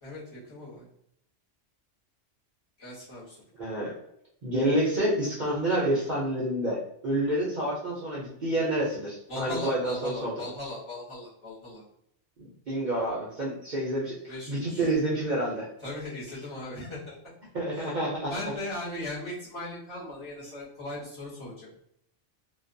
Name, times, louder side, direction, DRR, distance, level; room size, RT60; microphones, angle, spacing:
voice 1, 0.0-0.8 2.8-3.4 9.3-11.8 14.3-14.8 15.8-17.2 17.7-17.9 18.3-21.7, left 1 dB, 25° left, -10 dB, 1.0 m, -38 dB
voice 2, 3.6-3.9 4.4-10.3 12.4-15.7 17.5-18.3, right 1 dB, 50° right, -6 dB, 0.6 m, -28 dB
2.3 x 2.2 x 2.5 m, 0.74 s
omnidirectional pair, 1.2 m